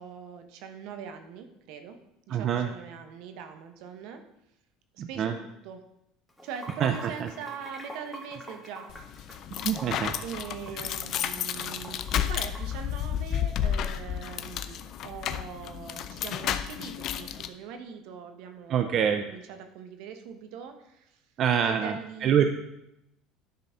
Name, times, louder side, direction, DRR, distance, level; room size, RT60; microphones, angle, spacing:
voice 1, 0.0-2.0 2.3-4.2 4.9-5.8 6.4-8.9 10.2-21.2 21.6-22.4, right 7 dB, 70° right, 7 dB, 1.1 m, -42 dB
voice 2, 2.3-2.7 5.0-5.3 6.8-7.3 9.6-10.1 18.7-19.2 21.4-22.0 22.2-22.4, right 8 dB, 45° right, 6 dB, 0.6 m, -25 dB
Water / Sink (filling or washing), 6.3-12.8, right 1 dB, 5° left, 1.5 m, -45 dB
sound 1, 8.9-17.5, left 10 dB, 55° left, 0.5 m, -32 dB
10.5 x 4.0 x 5.7 m, 0.83 s
supercardioid pair, 105°, 0 cm